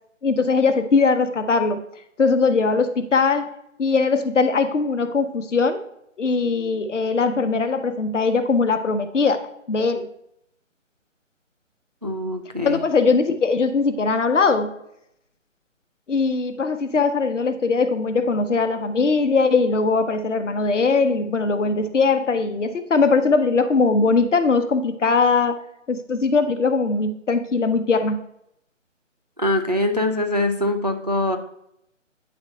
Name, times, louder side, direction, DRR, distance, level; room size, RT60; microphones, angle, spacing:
voice 1, 0.2-1.8 2.2-3.5 3.8-5.9 6.2-9.4 9.7-10.1 12.6-14.7 16.1-25.6 25.9-28.2, left 4 dB, 65° left, 9 dB, 0.9 m, -20 dB
voice 2, 12.0-12.8 29.4-31.4, left 1 dB, 35° right, 5 dB, 0.4 m, -23 dB
9.6 x 3.3 x 4.0 m, 0.77 s
figure-of-eight pair, 155°, 39 cm